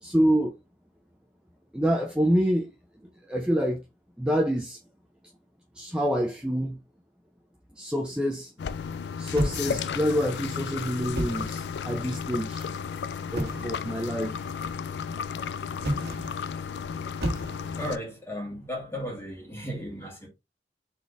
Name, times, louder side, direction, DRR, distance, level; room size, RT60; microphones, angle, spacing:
voice 1, 0.0-0.6 1.7-2.7 3.3-3.8 4.2-4.8 5.8-6.8 7.8-8.5 9.2-12.7 13.3-14.4, equal, 5° right, 0.4 m, -26 dB
sound 1, 8.6-18.0, left 6 dB, 75° left, 0.3 m, -34 dB
sound 2, 9.4-10.2 11.0-11.7 13.3-13.8 15.8-16.4 17.2-17.9, right 1 dB, 60° right, 1.3 m, -31 dB
voice 2, 17.8-20.3, equal, 15° left, 1.9 m, -35 dB
4.0 x 3.6 x 3.3 m
head